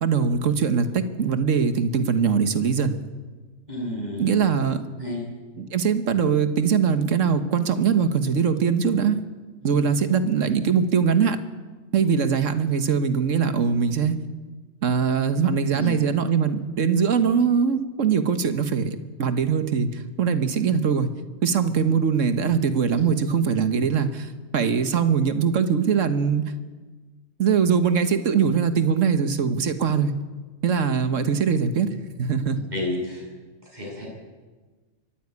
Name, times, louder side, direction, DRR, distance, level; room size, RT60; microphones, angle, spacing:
voice 1, 0.0-3.0 4.2-4.8 5.6-9.2 9.6-11.4 11.9-14.2 14.8-21.1 21.4-26.4 27.4-30.1 30.6-32.6, right 6 dB, 85° right, 10 dB, 1.6 m, -22 dB
voice 2, 3.7-4.3 5.0-5.3 9.6-9.8 15.7-15.9 23.0-23.1 32.7-33.3 33.6-34.1, left 1 dB, 35° right, -2 dB, 8.3 m, -31 dB
24.0 x 13.5 x 9.7 m, 1.3 s
omnidirectional pair, 1.3 m